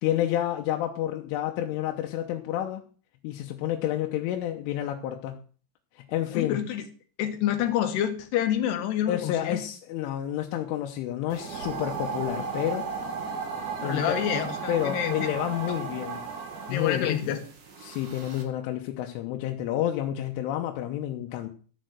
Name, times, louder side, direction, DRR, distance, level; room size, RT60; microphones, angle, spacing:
voice 1, 0.0-2.8 3.2-5.4 6.0-6.6 9.1-12.9 13.8-14.0 14.7-16.2 16.7-17.3 17.8-21.5, left 12 dB, 85° left, 3 dB, 3.5 m, -29 dB
voice 2, 6.3-6.8 7.2-9.6 13.8-15.2 15.7-15.8 16.7-17.4, left 10 dB, 70° left, 8 dB, 3.2 m, -28 dB
sound 1, 11.3-18.4, right 5 dB, 50° right, 3.3 m, -35 dB
13.5 x 6.5 x 7.9 m, 0.41 s
omnidirectional pair, 5.5 m